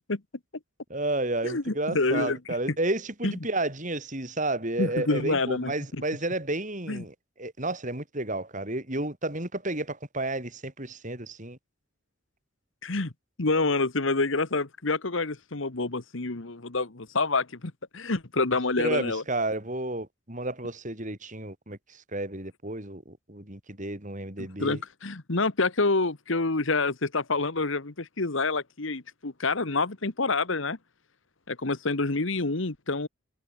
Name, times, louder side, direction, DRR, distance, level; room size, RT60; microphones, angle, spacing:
voice 1, 0.9-11.6 18.8-24.8, right 2 dB, 40° right, 5.2 m, -31 dB
voice 2, 1.4-2.4 3.2-3.3 4.8-5.7 6.9-7.0 12.8-13.1 13.4-19.2 24.4-30.8 31.5-33.1, left 3 dB, 70° left, 1.5 m, -27 dB
head